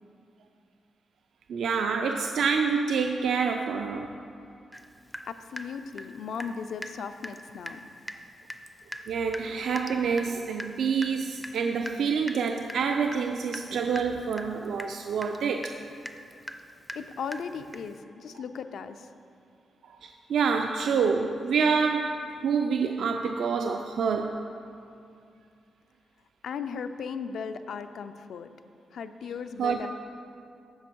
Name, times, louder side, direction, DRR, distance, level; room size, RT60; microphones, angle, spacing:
voice 1, 1.5-4.1 9.1-15.8 20.0-24.4 29.6-29.9, right 5 dB, 75° right, 4 dB, 0.4 m, -27 dB
Water tap faucet / Drip, 4.7-4.9 5.1-6.6 6.8-7.0 7.2-7.4 7.7-7.8 8.1-8.2 8.5-18.0, equal, 5° left, 0.4 m, -41 dB
voice 2, 5.2-7.9 16.9-19.1 26.4-28.5 28.9-29.9, left 6 dB, 70° left, 9 dB, 0.4 m, -37 dB
14.5 x 5.1 x 4.5 m, 2.5 s
wide cardioid pair, 145°, 0 cm